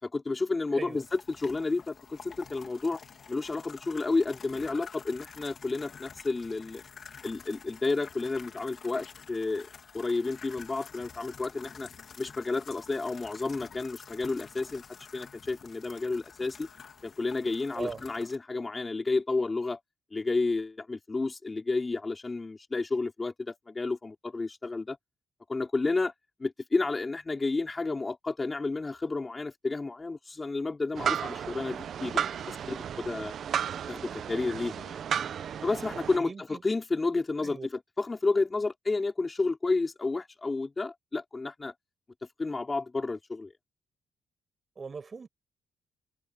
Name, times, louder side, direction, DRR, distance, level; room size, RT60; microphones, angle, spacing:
voice 1, 0.0-3.0 3.3-6.8 7.2-9.7 9.9-11.9 12.2-14.8 15.1-16.7 17.0-19.8 20.1-25.0 25.5-26.1 26.4-33.3 33.9-35.0 35.6-37.6 38.0-41.7 42.4-43.5, left 3 dB, 25° left, 5.7 m, -31 dB
sound 1, 0.9-18.4, left 6 dB, 50° left, 4.1 m, -49 dB
sound 2, 30.9-36.2, right 8 dB, 60° right, 1.0 m, -33 dB
voice 2, 36.1-36.6 37.4-37.7 44.8-45.3, right 5 dB, 35° right, 6.5 m, -39 dB
cardioid pair, 90°, 0 cm